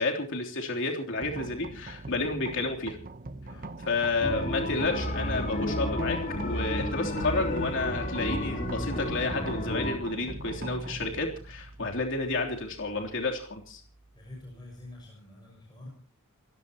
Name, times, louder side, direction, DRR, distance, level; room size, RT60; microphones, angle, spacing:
voice 1, 0.0-3.0 3.8-13.8, left 3 dB, 60° left, 2 dB, 3.4 m, -31 dB
sound 1, 1.2-15.1, right 2 dB, 40° right, 1.0 m, -42 dB
sound 2, 4.2-10.0, left 1 dB, 40° left, 3.1 m, -31 dB
voice 2, 14.1-15.9, left 1 dB, 20° left, -1 dB, 6.3 m, -46 dB
29.5 x 16.0 x 3.0 m, 0.38 s
head